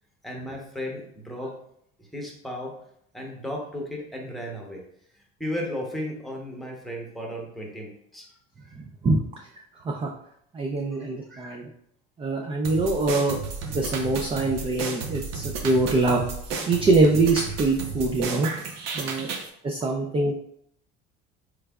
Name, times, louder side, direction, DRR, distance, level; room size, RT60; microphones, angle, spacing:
voice 1, 0.2-1.5 2.0-2.8 3.1-4.8 5.1-8.3 8.6-8.8 11.3-11.6 13.6-13.8 18.7-19.2 19.8-19.9, left 1 dB, ahead, -1 dB, 0.9 m, -35 dB
voice 2, 8.8-9.2 9.5-10.1 10.5-11.6 12.2-13.4 13.7-16.2 16.7-18.5 18.9-19.3 19.6-20.3, right 2 dB, 20° right, 1 dB, 0.4 m, -24 dB
sound 1, 12.6-19.5, right 4 dB, 65° right, 0.7 m, -33 dB
3.4 x 3.2 x 2.3 m, 0.70 s
supercardioid pair, 95°, 29 cm